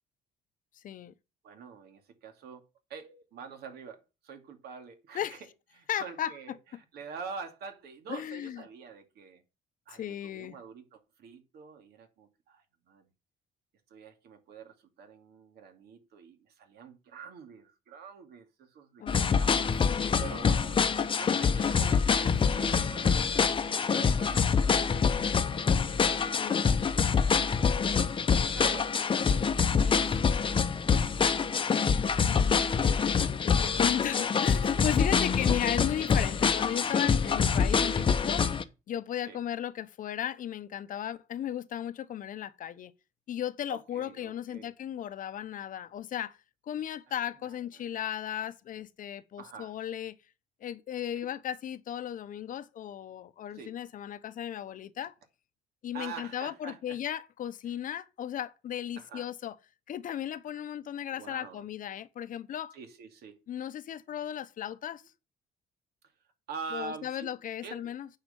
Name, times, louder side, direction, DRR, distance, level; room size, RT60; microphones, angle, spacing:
voice 1, 0.8-1.1 5.1-5.4 5.9-6.3 8.1-8.6 9.9-10.6 19.0-20.5 26.4-26.8 32.2-38.6 38.9-42.9 43.3-46.4 46.7-50.2 50.6-55.1 55.8-59.6 59.9-62.7 63.5-65.0 66.7-68.1, left 10 dB, 55° left, 0.9 m, -36 dB
voice 2, 1.4-2.6 2.9-5.4 5.7-9.4 9.9-13.1 13.9-19.8 20.2-20.8 21.2-23.2 23.8-27.7 28.6-31.9 35.1-35.2 37.5-37.6 39.2-39.4 43.7-44.7 47.8-47.9 49.4-49.7 51.2-51.3 53.5-53.8 55.9-57.0 57.6-57.8 59.0-59.3 61.1-61.6 62.7-63.4 66.5-67.3 67.6-67.9, right 5 dB, 70° right, 2.4 m, -46 dB
sound 1, 19.1-38.6, left 6 dB, 30° left, 0.9 m, -26 dB
9.1 x 5.0 x 7.0 m
cardioid pair, 110°, 17 cm